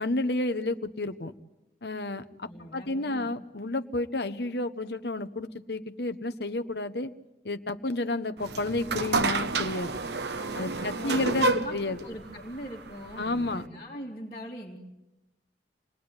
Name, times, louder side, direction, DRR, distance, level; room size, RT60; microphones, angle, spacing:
voice 1, 0.0-1.3 1.8-7.1 7.4-9.9 10.5-12.0 13.2-13.6, left 2 dB, 60° left, 10 dB, 1.2 m, -31 dB
voice 2, 2.4-3.3 10.0-14.8, equal, 30° left, -4 dB, 3.1 m, -42 dB
sound 1, 8.4-13.7, right 3 dB, 65° right, 1.1 m, -30 dB
27.5 x 20.0 x 9.8 m, 0.98 s
head